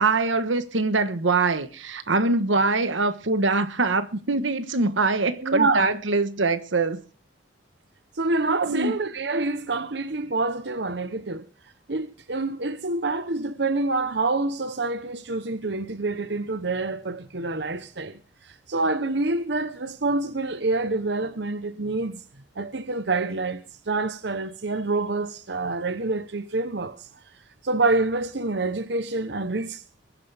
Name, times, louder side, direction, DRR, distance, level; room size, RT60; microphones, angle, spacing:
voice 1, 0.0-7.0 8.6-9.0, right 3 dB, 85° right, 1.3 m, -23 dB
voice 2, 5.4-5.9 8.1-11.4 11.9-22.2 22.6-27.1 27.6-29.8, right 3 dB, 60° right, 0.9 m, -27 dB
20.5 x 11.0 x 3.5 m
head